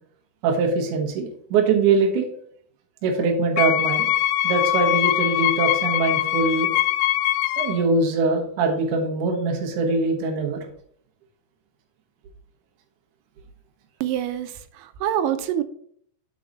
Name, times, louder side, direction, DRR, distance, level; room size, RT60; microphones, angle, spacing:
voice 1, 0.4-2.3 3.0-4.1 4.4-6.7 7.6-10.6, right 4 dB, 70° right, 0 dB, 1.9 m, -22 dB
Wind instrument woodwind instrument, 3.6-7.9, left 15 dB, 85° left, 2.3 m, -22 dB
voice 2, 14.0-15.6, right 11 dB, 85° right, 10 dB, 2.9 m, -26 dB
6.5 x 3.9 x 5.3 m, 0.63 s
omnidirectional pair, 5.3 m